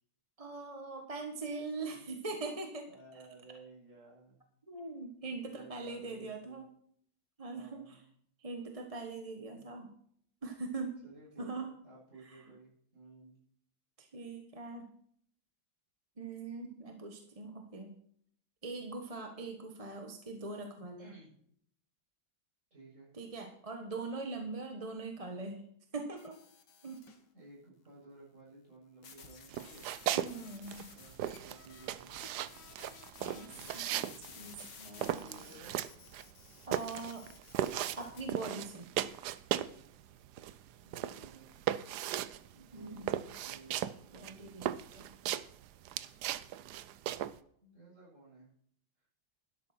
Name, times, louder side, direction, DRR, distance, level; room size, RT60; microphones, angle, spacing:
voice 1, 0.4-2.9 4.7-6.7 7.4-8.0 8.4-9.9 10.4-11.0 11.4-11.7 12.2-12.4 14.0-14.9 16.2-17.9 18.6-21.1 23.1-25.7 25.9-26.4 26.8-27.0 30.1-30.9 33.2-35.2 36.7-37.3 38.0-38.9 42.7-43.2 44.1-45.1, right 3 dB, 20° right, 4 dB, 1.1 m, -42 dB
voice 2, 2.9-4.5 5.4-6.6 7.5-8.1 9.3-9.6 11.0-13.4 21.0-21.3 22.7-23.1 27.3-29.9 30.9-32.1 33.3-34.1 34.9-35.7 40.8-41.6 42.5-43.8 46.1-46.2 47.6-48.5, right 3 dB, 35° right, -5 dB, 7.5 m, -56 dB
sound 1, 26.2-27.2 29.0-38.2, left 6 dB, 60° left, 2.1 m, -54 dB
sound 2, 29.5-30.3 30.6-39.8 40.1-47.4, right 11 dB, 70° right, 1.1 m, -37 dB
12.0 x 11.5 x 4.4 m, 0.65 s
omnidirectional pair, 2.1 m